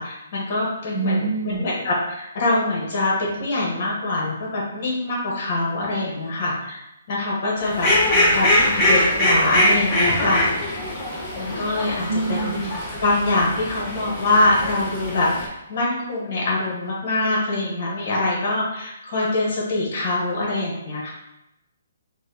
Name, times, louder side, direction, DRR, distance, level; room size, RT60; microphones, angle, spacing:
voice 1, 0.0-6.8 7.1-10.6 11.3-12.6 13.0-21.1, left 2 dB, 40° left, -4 dB, 1.2 m, -24 dB
voice 2, 0.9-1.6 12.1-12.7, right 3 dB, 65° right, 2 dB, 0.6 m, -24 dB
Fowl, 7.6-15.4, left 1 dB, 15° left, 0.9 m, -22 dB
4.9 x 2.2 x 2.8 m, 0.90 s
hypercardioid pair, 170°, 0 cm